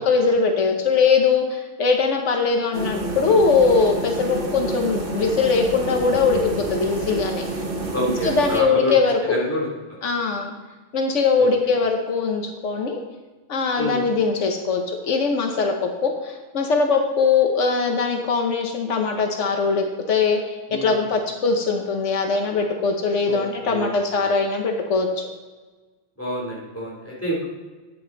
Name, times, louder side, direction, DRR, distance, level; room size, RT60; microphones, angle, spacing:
voice 1, 0.0-7.4 8.2-9.2 10.0-10.5 10.9-13.0 13.5-25.3, left 4 dB, 90° left, 3 dB, 1.3 m, -21 dB
sound 1, 2.7-8.6, right 2 dB, 50° right, 1.4 m, -28 dB
voice 2, 7.9-8.9 9.2-9.7 11.7-11.8 13.7-14.0 20.7-21.1 23.3-23.9 26.2-27.4, left 1 dB, 10° left, -5 dB, 3.2 m, -28 dB
9.5 x 8.4 x 3.9 m, 1.3 s
omnidirectional pair, 1.2 m